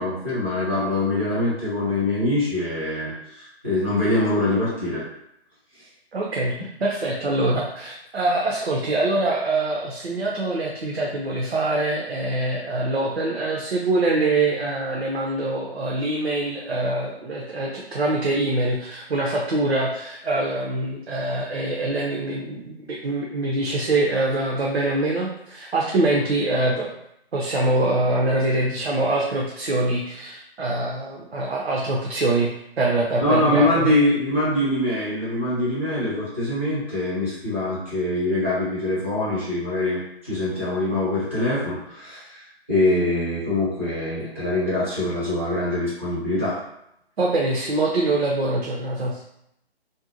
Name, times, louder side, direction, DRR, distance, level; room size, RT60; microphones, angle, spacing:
voice 1, 0.0-5.0 33.2-42.4 42.7-46.6, left 1 dB, 10° right, -10 dB, 0.5 m, -24 dB
voice 2, 6.1-26.9 27.3-32.5 32.8-33.9 47.2-49.2, right 2 dB, 70° right, -3 dB, 0.6 m, -24 dB
2.6 x 2.0 x 2.6 m, 0.77 s
figure-of-eight pair, 145°, 32 cm